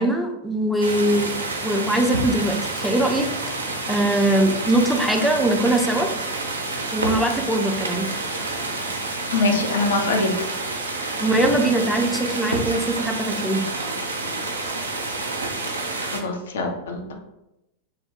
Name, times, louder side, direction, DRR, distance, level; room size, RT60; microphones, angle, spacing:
voice 1, 0.0-1.3 1.6-3.3 3.9-6.1 6.9-8.1 11.1-13.6, right 1 dB, ahead, 2 dB, 0.4 m, -21 dB
sound 1, 0.8-16.2, right 2 dB, 75° right, 0.4 m, -28 dB
voice 2, 9.3-10.5 16.0-17.1, left 3 dB, 60° left, 3 dB, 0.5 m, -23 dB
2.7 x 2.0 x 3.8 m, 0.90 s
figure-of-eight pair, 90°, 0 cm